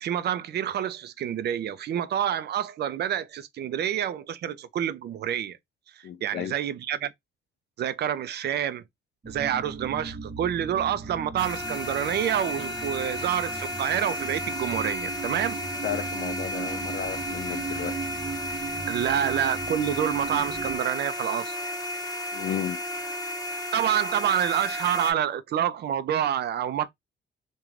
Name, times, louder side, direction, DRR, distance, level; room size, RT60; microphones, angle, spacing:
voice 1, 0.0-5.6 6.0-7.1 7.8-8.8 9.3-15.6 18.8-21.6 23.7-26.9, right 10 dB, 55° right, 0.4 m, -28 dB
voice 2, 6.0-6.5 15.8-18.0 22.3-22.8, left 10 dB, 55° left, 0.4 m, -33 dB
sound 1, 9.2-20.8, right 5 dB, 30° right, 0.7 m, -38 dB
sound 2, 11.4-25.1, left 1 dB, 15° left, 1.0 m, -33 dB
2.4 x 2.2 x 3.0 m
cardioid pair, 90°, 20 cm